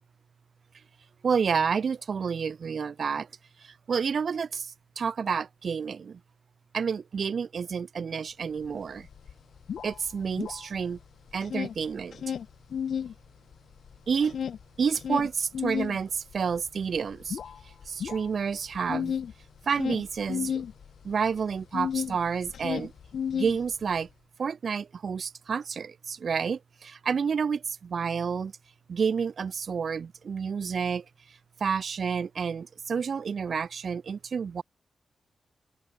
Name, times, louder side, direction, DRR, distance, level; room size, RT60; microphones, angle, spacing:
voice 1, 1.2-3.3 3.6-6.2 6.7-9.1 9.8-11.0 11.3-12.2 14.1-14.4 14.8-17.4 17.9-19.1 19.7-20.6 21.0-22.9 23.3-24.1 24.4-28.5 28.9-31.0 31.6-34.6, right 6 dB, 65° right, 3.0 m, -29 dB
sound 1, 8.6-8.7 9.0-11.0 11.3-13.1 13.5-22.2 22.4-24.0, left 8 dB, 85° left, 5.4 m, -33 dB
wide cardioid pair, 95°, 0 cm